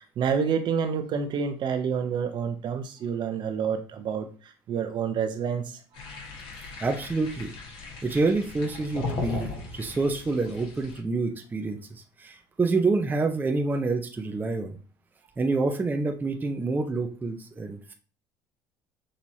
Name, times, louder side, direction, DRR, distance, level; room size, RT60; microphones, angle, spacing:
voice 1, 0.0-6.3, right 6 dB, 50° right, 7 dB, 0.8 m, -29 dB
sound 1, 5.9-11.0, left 4 dB, 55° left, 1.5 m, -37 dB
voice 2, 6.8-7.5 8.0-14.8 15.4-17.9, right 3 dB, 20° right, 3 dB, 0.6 m, -27 dB
6.2 x 2.8 x 2.7 m, 0.39 s
supercardioid pair, 85°, 10 cm